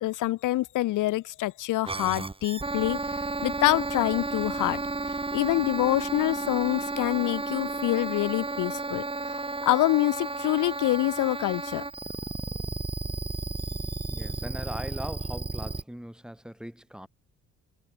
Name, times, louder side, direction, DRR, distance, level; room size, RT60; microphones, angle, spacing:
voice 1, 0.0-3.0 3.4-4.8 5.3-9.0 9.6-11.8, left 16 dB, 85° left, 1.4 m, -26 dB
sound 1, 1.9-15.8, right 3 dB, 20° right, 4.5 m, -33 dB
voice 2, 14.1-17.1, equal, 5° right, 3.3 m, -40 dB
cardioid pair, 90°, 30 cm